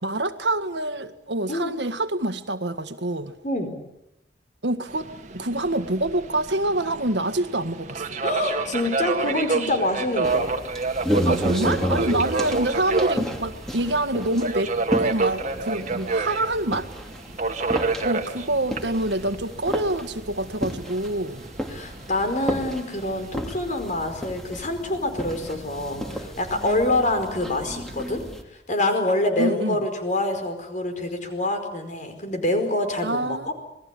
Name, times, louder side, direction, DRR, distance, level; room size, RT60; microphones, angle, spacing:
voice 1, 0.0-3.3 4.6-8.2 11.2-16.9 18.0-21.4 29.4-29.8 33.0-33.5, right 1 dB, 80° right, 1.7 m, -26 dB
voice 2, 3.4-3.8 8.2-10.5 12.1-12.3 21.7-28.2 28.5-33.5, left 1 dB, 45° left, 4.9 m, -26 dB
Subway metro underground, 4.9-23.3, right 3 dB, 45° right, 2.0 m, -29 dB
sound 1, 10.2-28.4, equal, 5° left, 2.8 m, -32 dB
27.5 x 20.5 x 8.5 m
head